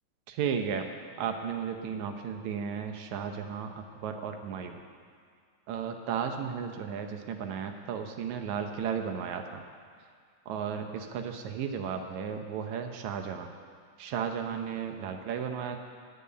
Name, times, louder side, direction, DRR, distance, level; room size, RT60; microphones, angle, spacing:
voice 1, 0.3-0.9 1.2-4.8 5.7-9.6 10.5-13.5 14.0-15.8, right 7 dB, 70° right, 5 dB, 1.9 m, -34 dB
9.7 x 9.6 x 8.7 m, 2.2 s
omnidirectional pair, 4.1 m